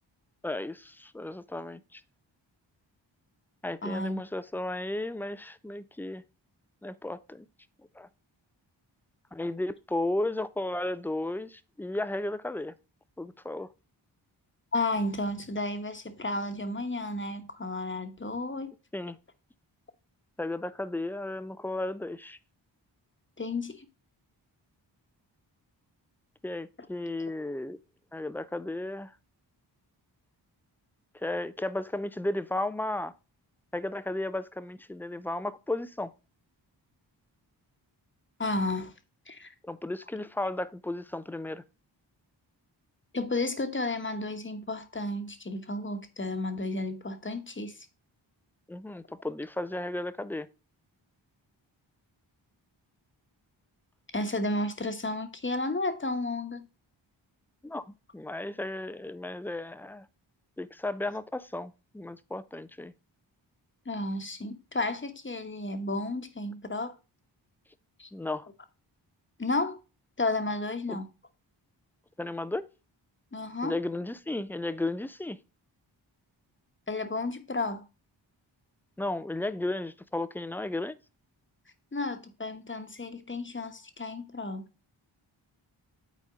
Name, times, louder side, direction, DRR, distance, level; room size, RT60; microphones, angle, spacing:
voice 1, 0.4-2.0 3.6-6.2 6.8-7.5 8.0-8.1 9.3-12.7 13.2-13.7 18.9-19.2 20.4-22.4 26.4-27.8 28.1-29.1 31.2-33.1 33.7-36.1 39.6-41.6 48.7-50.5 57.6-60.1 60.6-62.9 68.1-68.5 70.9-71.0 72.2-72.7 73.6-75.4 79.0-80.9, left 2 dB, 5° left, 0.5 m, -34 dB
voice 2, 3.8-4.2 14.7-18.7 23.4-23.8 38.4-38.9 39.3-39.5 43.1-47.8 54.1-56.7 63.9-66.9 68.0-68.1 69.4-69.8 70.2-71.1 73.3-73.8 76.9-77.8 81.9-84.6, left 2 dB, 25° left, 1.2 m, -32 dB
9.3 x 4.2 x 3.7 m
cardioid pair, 40°, 47 cm